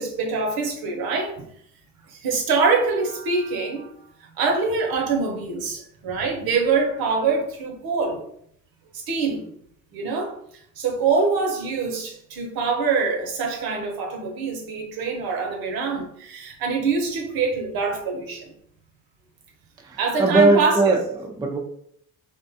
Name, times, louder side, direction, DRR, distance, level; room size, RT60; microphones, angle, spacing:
voice 1, 0.0-1.3 2.1-3.9 4.4-8.2 8.9-9.4 9.9-10.3 10.8-18.5 20.0-20.8, right 4 dB, 75° right, 1 dB, 0.8 m, -24 dB
voice 2, 19.8-21.6, right 3 dB, 10° right, 2 dB, 0.3 m, -20 dB
2.4 x 2.2 x 2.6 m, 0.69 s
cardioid pair, 85°, 36 cm